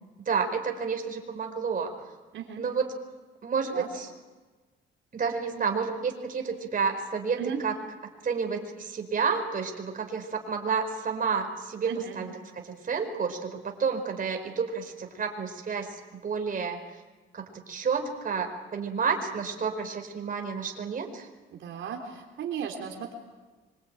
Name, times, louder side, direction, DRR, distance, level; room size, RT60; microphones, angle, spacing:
voice 1, 0.2-1.9 2.6-2.9 3.4-4.1 5.1-7.7 8.2-16.8 17.3-21.3, right 5 dB, 45° right, 4 dB, 4.7 m, -30 dB
voice 2, 2.3-2.6 3.7-3.9 7.4-7.6 11.9-12.2 21.5-23.1, right 8 dB, 75° right, 2 dB, 3.6 m, -36 dB
26.5 x 24.0 x 8.9 m, 1.3 s
cardioid pair, 90°, 20 cm